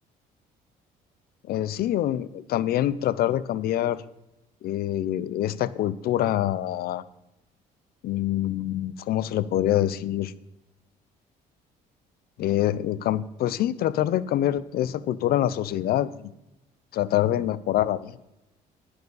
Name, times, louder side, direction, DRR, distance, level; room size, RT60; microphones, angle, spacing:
voice 1, 1.5-4.0 4.6-7.0 8.0-10.3 12.4-16.3 16.9-18.2, left 12 dB, 65° left, 17 dB, 0.5 m, -25 dB
10.5 x 9.6 x 3.9 m, 0.93 s
cardioid pair, 110°, 17 cm